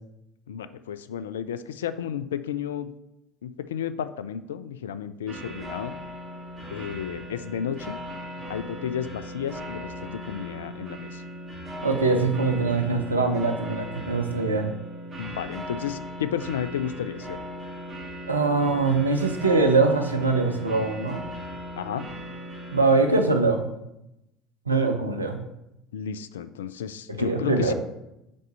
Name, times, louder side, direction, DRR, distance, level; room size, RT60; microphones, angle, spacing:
voice 1, 0.5-2.9 3.4-5.9 6.7-8.0 8.5-11.2 15.2-17.4 21.8-22.0 25.9-27.7, left 8 dB, 75° left, 13 dB, 0.3 m, -32 dB
sound 1, 5.3-23.2, equal, 30° right, 1.9 m, -38 dB
voice 2, 11.8-14.7 18.3-21.2 22.7-23.6 24.7-25.4 27.2-27.7, right 3 dB, 90° right, 5 dB, 0.7 m, -22 dB
5.3 x 3.9 x 5.3 m, 0.87 s
figure-of-eight pair, 65°, 0 cm